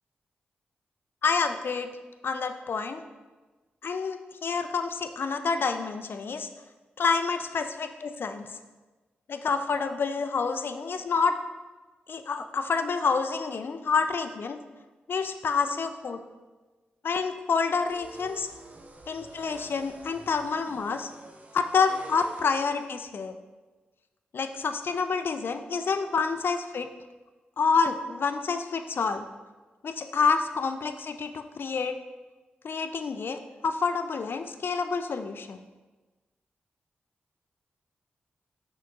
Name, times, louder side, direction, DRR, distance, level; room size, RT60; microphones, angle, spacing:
voice 1, 1.2-1.9 2.2-3.0 3.8-6.5 7.0-8.5 9.3-11.3 12.1-14.6 15.1-16.2 17.0-18.5 19.1-21.1 21.5-23.3 24.3-26.9 27.6-29.2 29.8-31.9 32.6-35.6, left 5 dB, 65° left, 8 dB, 0.3 m, -28 dB
sound 1, 17.9-22.9, right 2 dB, 40° right, 0.6 m, -47 dB
5.7 x 3.6 x 2.3 m, 1.3 s
supercardioid pair, 40°, 4 cm